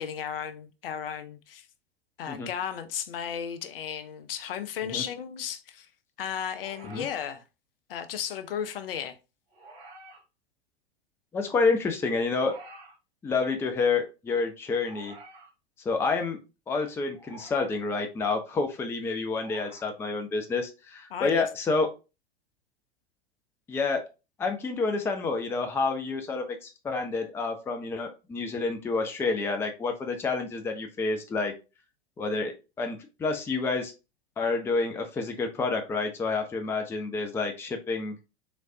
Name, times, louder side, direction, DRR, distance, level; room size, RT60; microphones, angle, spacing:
voice 1, 0.0-1.7 2.2-5.9 6.2-7.4 7.9-9.2 21.1-21.5, left 8 dB, 60° left, 0.6 m, -34 dB
sound 1, 6.5-7.3 9.5-10.2 12.3-13.0 14.8-15.5 17.1-17.8 19.3-19.9 21.5-21.6, right 2 dB, 35° right, 1.9 m, -49 dB
voice 2, 11.3-12.6 13.2-15.1 15.8-16.4 16.7-21.9 23.7-24.0 24.4-31.5 32.2-33.9 34.4-38.2, left 4 dB, 10° left, 0.4 m, -29 dB
3.8 x 3.2 x 2.6 m
figure-of-eight pair, 90°, 32 cm